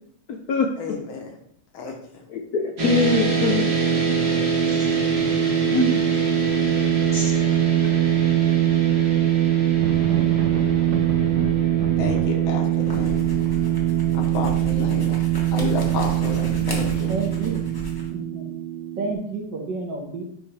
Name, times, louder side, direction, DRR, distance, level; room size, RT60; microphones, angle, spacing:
voice 1, 0.8-1.4 1.7-2.0 12.0-13.3 14.1-15.3 15.5-17.1, left 4 dB, 70° left, 2 dB, 1.8 m, -30 dB
voice 2, 2.3-3.7 4.7-5.0 5.7-6.0 7.1-7.3, left 4 dB, 85° left, 2 dB, 0.8 m, -23 dB
sound 1, 2.8-19.1, right 9 dB, 40° right, 1.2 m, -22 dB
sound 2, 7.3-8.1 8.4-17.9, right 5 dB, 80° right, 0.9 m, -34 dB
sound 3, 12.8-18.1, left 1 dB, 15° left, 0.7 m, -35 dB
voice 3, 17.1-17.7 18.1-18.5 19.0-20.2, right 3 dB, 60° right, 1 dB, 1.7 m, -30 dB
10.0 x 3.5 x 3.4 m, 0.69 s
omnidirectional pair, 2.4 m